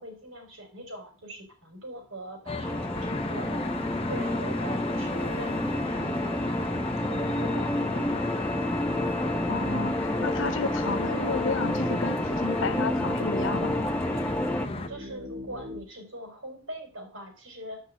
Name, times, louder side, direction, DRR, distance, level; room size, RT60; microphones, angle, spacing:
voice 1, 0.0-3.8 4.1-8.5 14.9-17.8, right 1 dB, 80° right, 4.9 m, -42 dB
sound 1, 2.0-15.8, left 1 dB, 30° right, 3.9 m, -44 dB
Traffic noise roadway noise, 2.5-14.9, left 2 dB, 30° left, 1.0 m, -34 dB
sound 2, 2.6-14.7, left 1 dB, 5° left, 0.5 m, -30 dB
voice 2, 9.5-13.9, left 4 dB, 70° left, 0.8 m, -32 dB
11.0 x 5.9 x 7.7 m
head